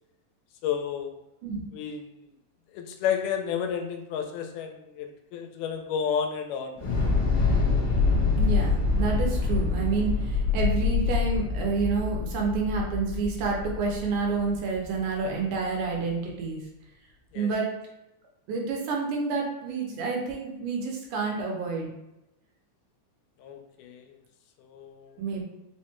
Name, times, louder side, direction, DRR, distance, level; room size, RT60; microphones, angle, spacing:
voice 1, 0.6-1.1 1.7-2.1 2.7-6.8 17.3-17.5 23.4-24.2 24.6-25.2, left 8 dB, 90° left, 4 dB, 2.1 m, -31 dB
Thunder / Explosion, 6.8-15.0, left 4 dB, 60° left, 1.2 m, -26 dB
voice 2, 8.4-16.6 17.4-17.7 18.5-21.9 25.2-25.4, right 4 dB, 85° right, -1 dB, 2.2 m, -29 dB
5.1 x 2.2 x 2.9 m, 0.91 s
omnidirectional pair, 3.6 m